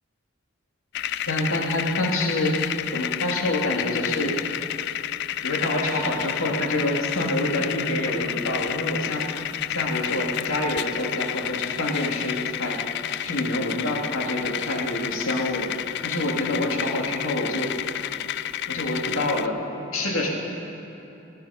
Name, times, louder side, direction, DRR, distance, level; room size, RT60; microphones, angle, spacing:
sound 1, 0.9-19.5, left 12 dB, 55° left, 0.3 m, -30 dB
voice 1, 1.3-2.6 2.9-4.4 5.4-9.3 9.7-12.8 13.2-15.7 16.0-17.7 18.7-20.3, left 1 dB, 85° left, -1 dB, 2.2 m, -27 dB
19.0 x 10.5 x 5.6 m, 3.0 s
head